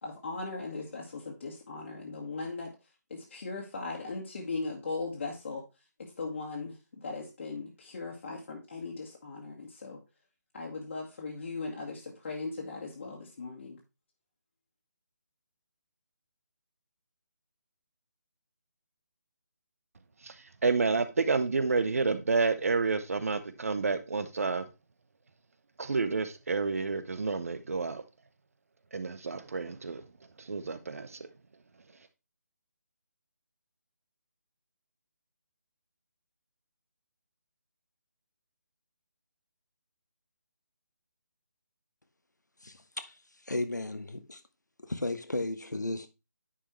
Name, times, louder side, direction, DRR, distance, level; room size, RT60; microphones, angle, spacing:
voice 1, 0.0-2.7 3.1-5.7 6.0-10.0 10.5-13.8, left 3 dB, 45° left, 1.9 m, -38 dB
voice 2, 20.6-24.6 25.8-28.0 28.9-30.0 30.5-31.2, right 4 dB, 55° right, 1.0 m, -29 dB
voice 3, 42.6-44.4 44.8-46.1, left 2 dB, 80° left, 1.3 m, -35 dB
10.0 x 5.2 x 3.2 m
figure-of-eight pair, 150°, 9 cm